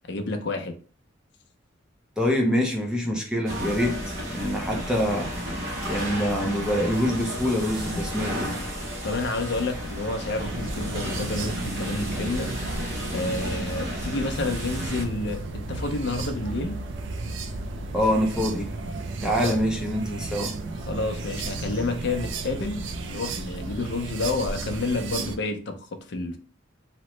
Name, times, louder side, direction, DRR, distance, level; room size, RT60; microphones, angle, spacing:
voice 1, 0.1-0.7 9.0-12.5 13.1-16.8 19.4-19.5 20.9-26.4, left 2 dB, 60° left, 7 dB, 0.5 m, -29 dB
voice 2, 2.2-8.6 17.9-18.7 19.2-20.5, equal, 5° right, 0 dB, 0.4 m, -25 dB
sound 1, 3.5-15.1, equal, 85° right, 0.8 m, -33 dB
sound 2, 10.3-25.4, right 3 dB, 65° right, 0.4 m, -34 dB
2.9 x 2.1 x 3.0 m, 0.40 s
head